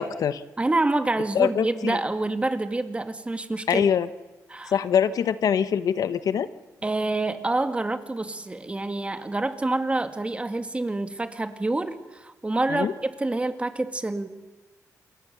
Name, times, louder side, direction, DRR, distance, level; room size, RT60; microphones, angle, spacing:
voice 1, 0.0-0.4 1.3-2.0 3.7-4.1 4.7-6.5 12.7-12.9, left 8 dB, 70° left, 13 dB, 1.0 m, -23 dB
voice 2, 0.6-3.9 4.5-4.8 6.8-14.3, right 2 dB, 20° right, 9 dB, 2.0 m, -27 dB
28.0 x 21.5 x 6.9 m, 1.2 s
cardioid pair, 90°, 6 cm